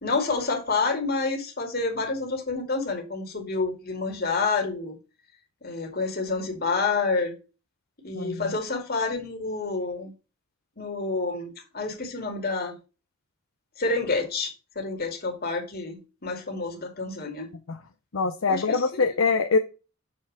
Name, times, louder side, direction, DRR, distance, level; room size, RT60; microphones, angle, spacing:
voice 1, 0.0-5.0 5.6-7.4 8.0-10.1 10.8-12.8 13.8-14.5 14.8-17.5 18.5-19.0, left 3 dB, 50° left, 2.3 m, -28 dB
voice 2, 8.1-8.5 17.7-17.8 18.1-19.6, left 4 dB, 70° left, 0.7 m, -24 dB
7.3 x 4.3 x 4.9 m
head